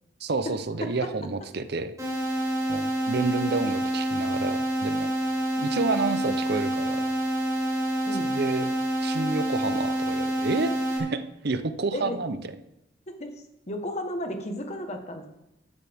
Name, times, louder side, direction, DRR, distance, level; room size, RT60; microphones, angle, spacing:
voice 1, 0.2-2.0 2.7-5.1 5.6-7.1 8.2-8.7 9.0-12.4, right 3 dB, 55° right, 11 dB, 0.8 m, -30 dB
sound 1, 2.0-11.0, right 1 dB, 20° right, 4.5 m, -27 dB
voice 2, 8.0-8.4 11.9-12.2 13.2-13.3 13.7-15.3, left 1 dB, 35° left, 5 dB, 1.3 m, -33 dB
14.0 x 12.0 x 3.6 m, 0.89 s
head